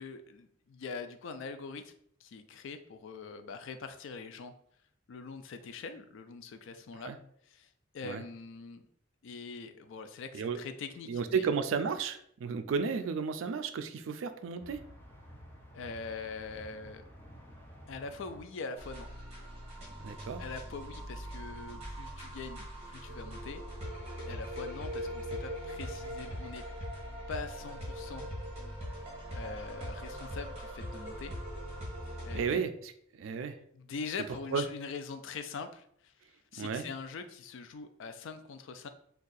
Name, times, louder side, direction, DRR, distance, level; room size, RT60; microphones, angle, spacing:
voice 1, 0.0-1.9 2.2-4.5 5.1-7.1 7.5-8.9 9.2-11.5 15.7-17.0 17.9-19.1 20.4-23.6 24.2-26.6 27.3-28.3 29.3-31.3 32.2-32.6 33.7-36.1 36.5-38.9, left 4 dB, 65° left, 9 dB, 0.4 m, -43 dB
voice 2, 10.3-10.6 11.1-14.8 20.0-20.4 32.3-33.6 34.5-34.6 36.6-36.8, right 5 dB, 65° right, 10 dB, 0.3 m, -33 dB
sound 1, 14.6-20.3, equal, 10° left, 0.5 m, -53 dB
sound 2, 18.8-32.5, equal, 30° right, 1.1 m, -41 dB
2.7 x 2.3 x 3.8 m, 0.65 s
head